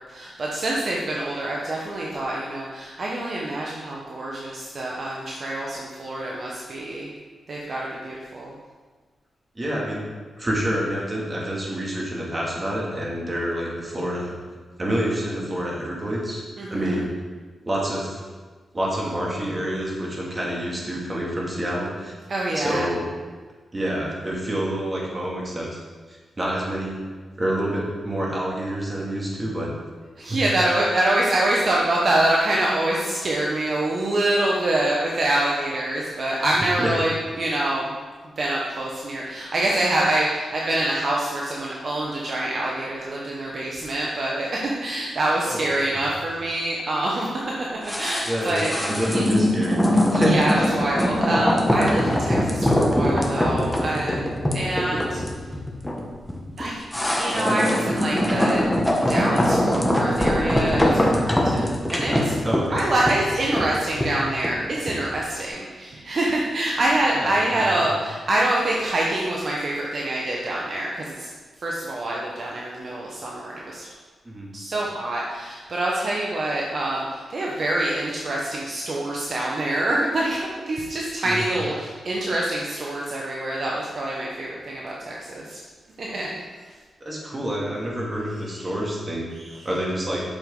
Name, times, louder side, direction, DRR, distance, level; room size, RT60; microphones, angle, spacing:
voice 1, 0.1-7.1 7.5-8.6 16.6-17.0 22.3-22.9 30.2-37.9 38.4-47.4 47.8-49.2 50.1-55.2 56.6-56.8 57.2-58.7 58.9-62.3 62.7-71.3 71.6-74.0 74.5-85.6 86.0-86.3 86.6-86.7 88.5-88.7 89.3-89.5, right 1 dB, 55° right, -3 dB, 1.2 m, -25 dB
voice 2, 9.6-10.0 10.4-14.4 14.8-16.4 16.7-17.1 17.6-18.2 18.7-22.1 22.5-23.0 23.7-25.8 26.1-27.0 27.4-29.7 30.3-30.4 36.6-36.9 45.5-45.7 45.9-46.1 48.3-49.8 50.1-50.7 62.4-62.8 67.1-67.3 67.7-67.9 74.2-74.5 81.2-81.7 87.0-90.2, equal, 25° right, -4 dB, 2.5 m, -27 dB
sound 1, 47.8-65.1 65.4-65.5, left 1 dB, 5° left, 1.2 m, -22 dB
8.9 x 6.9 x 3.9 m, 1.4 s
cardioid pair, 90°, 0 cm